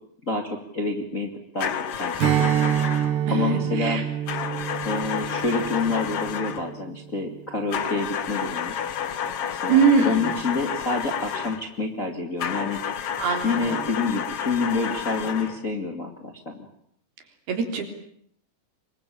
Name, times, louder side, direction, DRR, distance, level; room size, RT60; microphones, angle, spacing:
voice 1, 0.2-2.5 3.3-4.0 4.8-8.7 9.5-12.8 13.4-16.7, left 3 dB, 25° left, 4 dB, 1.8 m, -28 dB
sound 1, 1.6-3.2 4.3-6.7 7.7-11.7 12.4-15.6, left 8 dB, 75° left, 1.4 m, -30 dB
Strum, 2.2-7.0, right 10 dB, 90° right, 4.1 m, -26 dB
voice 2, 3.3-4.0 9.7-10.4 13.2-13.9 17.5-17.8, right 5 dB, 65° right, 5 dB, 5.4 m, -22 dB
25.0 x 22.5 x 8.7 m, 0.66 s
omnidirectional pair, 4.8 m